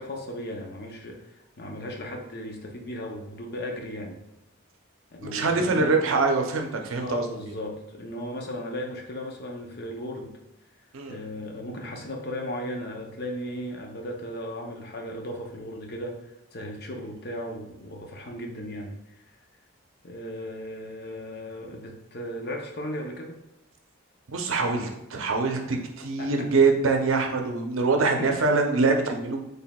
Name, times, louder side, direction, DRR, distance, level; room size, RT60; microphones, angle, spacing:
voice 1, 0.0-4.2 5.1-6.0 7.0-10.4 11.1-19.2 20.0-23.4 26.2-26.3 28.2-28.4, equal, 45° left, 2 dB, 0.6 m, -36 dB
voice 2, 5.3-7.3 10.9-11.2 24.3-29.4, right 3 dB, 70° right, 3 dB, 0.6 m, -24 dB
4.4 x 3.3 x 2.3 m, 0.90 s
head